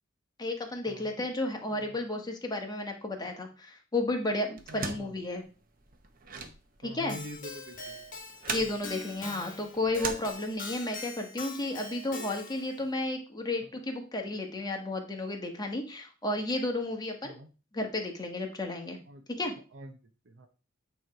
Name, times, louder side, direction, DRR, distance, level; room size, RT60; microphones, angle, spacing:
voice 1, 0.4-5.4 6.8-7.2 8.5-17.3 17.7-19.0 19.4-19.5, left 2 dB, 20° left, 3 dB, 1.3 m, -33 dB
sound 1, 4.6-10.9, right 5 dB, 45° right, 1.0 m, -41 dB
voice 2, 4.7-5.1 6.8-8.0 8.6-8.7 13.6-13.7 17.2-17.5 19.1-19.2 19.7-19.9 20.3-20.5, equal, 65° right, 5 dB, 0.7 m, -45 dB
Keyboard (musical), 7.1-12.8, left 3 dB, 45° left, 1.5 m, -43 dB
9.1 x 3.2 x 4.7 m, 0.34 s
head